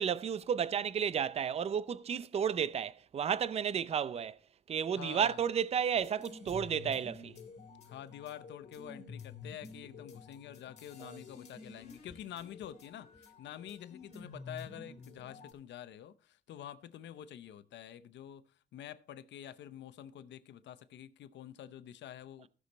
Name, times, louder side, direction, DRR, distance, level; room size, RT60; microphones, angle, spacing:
voice 1, 0.0-4.4 4.7-7.3 11.0-11.1, right 8 dB, 35° right, 0.5 m, -32 dB
voice 2, 4.9-5.4 7.8-18.4 18.7-22.5, left 10 dB, 75° left, 0.7 m, -47 dB
sound 1, 6.0-15.5, left 4 dB, 40° left, 3.0 m, -50 dB
16.0 x 6.2 x 4.1 m
cardioid pair, 140°, 19 cm